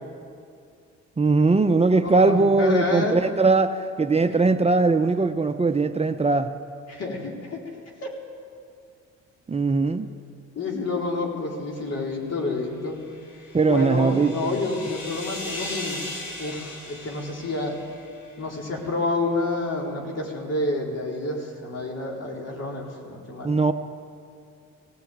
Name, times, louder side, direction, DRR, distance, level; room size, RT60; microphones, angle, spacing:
voice 1, 1.2-6.5 9.5-10.1 13.5-14.6 23.4-23.7, right 3 dB, 20° right, 7 dB, 0.7 m, -20 dB
voice 2, 2.0-3.2 4.2-4.4 6.9-7.6 8.0-8.1 10.5-13.0 13.7-17.8 18.4-23.6, left 2 dB, 55° left, 0 dB, 4.1 m, -29 dB
sound 1, 12.8-18.4, left 1 dB, 80° left, 5.9 m, -38 dB
17.5 x 17.0 x 9.2 m, 2.4 s
cardioid pair, 90°, 30 cm